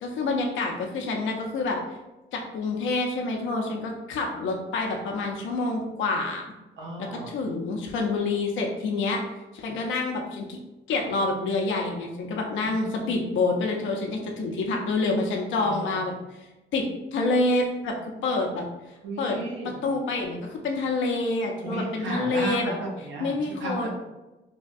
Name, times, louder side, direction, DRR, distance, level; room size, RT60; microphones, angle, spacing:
voice 1, 0.0-1.8 2.3-6.4 7.1-9.2 9.5-10.6 10.9-16.1 16.7-17.9 18.2-18.7 19.2-19.4 19.6-22.7 23.2-23.9, left 3 dB, 75° left, 1 dB, 0.5 m, -27 dB
voice 2, 6.8-7.3 12.8-13.1 15.6-16.0 19.0-19.7 21.6-23.9, right 2 dB, 70° right, -2 dB, 0.8 m, -34 dB
3.4 x 2.2 x 2.5 m, 1.0 s
cardioid pair, 90°, 20 cm